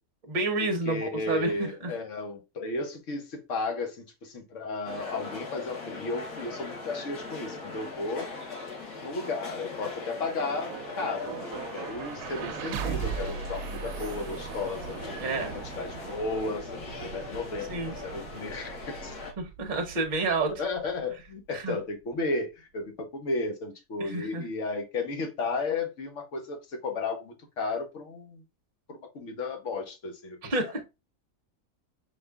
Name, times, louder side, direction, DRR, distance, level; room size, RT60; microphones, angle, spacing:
voice 1, 0.3-1.9 15.2-15.5 17.7-18.0 19.4-20.5 21.5-21.8 24.0-24.4 30.4-30.8, right 2 dB, 35° right, 0.9 m, -29 dB
voice 2, 0.9-8.3 9.0-15.0 15.7-19.2 20.6-28.4 28.9-30.7, left 3 dB, 55° left, 1.3 m, -34 dB
sound 1, 4.8-19.3, left 3 dB, 90° left, 1.8 m, -40 dB
sound 2, 9.7-21.8, right 7 dB, 75° right, 1.0 m, -40 dB
5.1 x 2.5 x 3.3 m
omnidirectional pair, 1.6 m